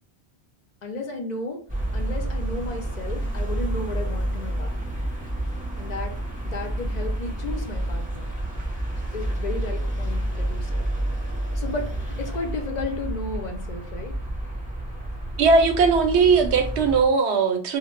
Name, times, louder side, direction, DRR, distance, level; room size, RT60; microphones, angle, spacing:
voice 1, 0.8-1.6 1.9-4.7 5.8-6.2 6.4-8.3 9.1-10.8 11.6-14.1, left 2 dB, 50° left, 0.5 m, -33 dB
sound 1, 1.7-17.1, right 1 dB, 10° right, 0.5 m, -29 dB
voice 2, 15.4-17.8, right 4 dB, 90° right, 0.9 m, -19 dB
2.1 x 2.0 x 3.0 m
omnidirectional pair, 1.1 m